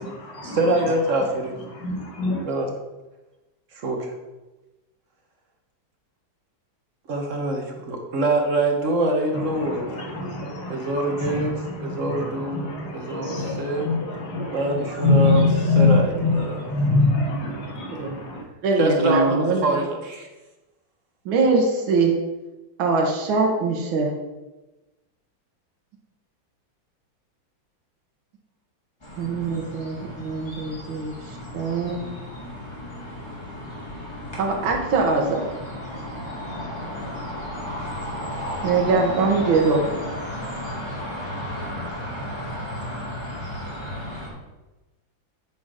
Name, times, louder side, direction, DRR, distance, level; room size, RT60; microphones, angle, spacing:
voice 1, 0.0-2.5 9.3-18.4, left 3 dB, 60° left, 1.7 m, -24 dB
voice 2, 0.6-1.5 2.4-2.7 3.7-4.1 7.1-10.0 10.7-11.5 11.8-12.6 12.9-13.8 14.5-15.4 15.8-16.1 16.3-16.5 18.8-20.3, right 2 dB, 45° right, 1.2 m, -24 dB
voice 3, 18.6-19.8 21.2-22.2 22.8-24.1 29.2-31.1 31.5-32.0 34.4-35.5 38.6-39.8, right 3 dB, 85° right, 1.8 m, -22 dB
sound 1, 29.0-44.3, equal, 15° left, 1.8 m, -34 dB
8.6 x 4.2 x 4.9 m
omnidirectional pair, 2.1 m